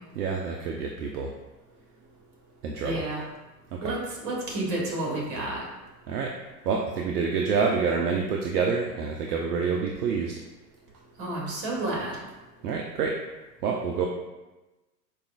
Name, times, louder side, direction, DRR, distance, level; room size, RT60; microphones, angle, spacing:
voice 1, 0.2-1.3 2.6-3.0 3.7-3.9 6.1-6.3 6.7-10.3 12.6-13.2 13.6-14.0, right 5 dB, 65° right, 1 dB, 0.5 m, -27 dB
voice 2, 2.8-3.3 3.8-5.6 11.2-12.2, right 2 dB, 35° right, -3 dB, 1.3 m, -30 dB
4.8 x 2.4 x 2.3 m, 1.1 s
figure-of-eight pair, 100°, 50 cm